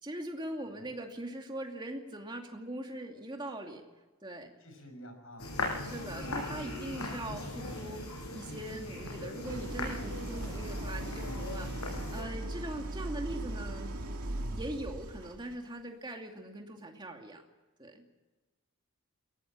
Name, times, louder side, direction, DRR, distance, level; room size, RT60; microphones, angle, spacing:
voice 1, 0.0-3.8 4.2-4.5 5.8-8.0 8.3-14.0 14.5-17.4 17.8-18.0, right 1 dB, 20° right, 2 dB, 2.6 m, -41 dB
voice 2, 4.6-5.6, equal, 65° left, 6 dB, 5.9 m, -50 dB
sound 1, 5.4-12.2, left 2 dB, 85° left, 6.9 m, -39 dB
Idling, 9.4-15.5, right 1 dB, 85° right, 2.3 m, -39 dB
22.0 x 18.0 x 7.4 m, 1.2 s
head